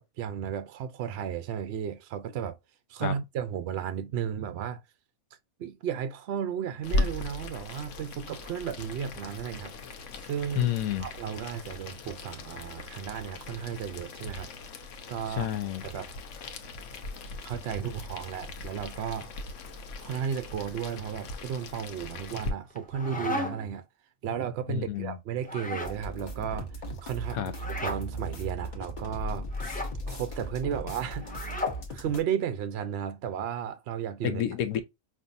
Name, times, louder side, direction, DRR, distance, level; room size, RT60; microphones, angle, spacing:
voice 1, 0.0-2.6 2.9-4.8 5.6-9.7 10.2-10.7 11.0-14.5 15.1-15.5 15.8-16.1 17.4-19.4 20.0-23.8 24.2-26.7 27.0-29.5 30.1-31.5 31.9-34.4, right 8 dB, 65° right, 0.7 m, -34 dB
Boiling, 6.8-22.5, left 2 dB, 65° left, 1.0 m, -38 dB
voice 2, 10.6-11.1 15.4-15.8 24.7-25.2 27.3-27.5 34.2-34.8, left 11 dB, 90° left, 1.1 m, -29 dB
sound 1, 22.7-23.8 25.4-26.0 27.5-28.0 29.5-29.9 31.2-31.8, left 2 dB, 10° left, 0.5 m, -34 dB
sound 2, 25.8-32.2, right 1 dB, 40° left, 1.0 m, -37 dB
5.4 x 2.6 x 2.5 m
omnidirectional pair, 1.4 m